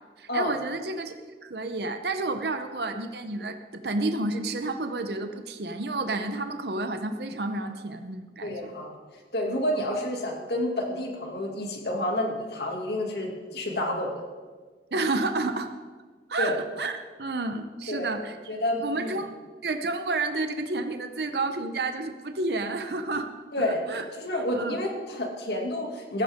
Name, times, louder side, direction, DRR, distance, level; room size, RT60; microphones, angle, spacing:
voice 1, 0.2-1.1 1.4-8.7 14.9-15.7 16.3-18.4 18.8-19.3 19.6-23.3 23.9-24.1 24.3-24.8, right 2 dB, 65° right, 7 dB, 0.8 m, -30 dB
voice 2, 8.4-8.9 9.3-14.1 16.4-16.6 17.9-18.2 18.5-19.2 23.5-23.8 24.1-26.2, left 1 dB, 65° left, 1 dB, 2.4 m, -29 dB
15.5 x 14.0 x 3.7 m, 1.5 s
head